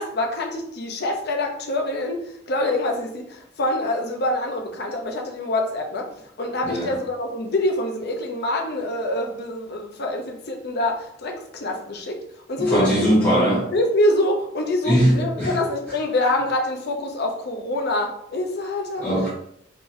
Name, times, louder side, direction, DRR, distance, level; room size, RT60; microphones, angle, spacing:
voice 1, 0.0-6.1 6.4-12.2 12.5-13.1 13.7-19.1, left 1 dB, 55° left, 2 dB, 0.6 m, -25 dB
voice 2, 12.6-13.7 14.8-15.5 19.0-19.3, equal, 15° left, -12 dB, 1.1 m, -20 dB
3.7 x 2.9 x 2.6 m, 0.72 s
head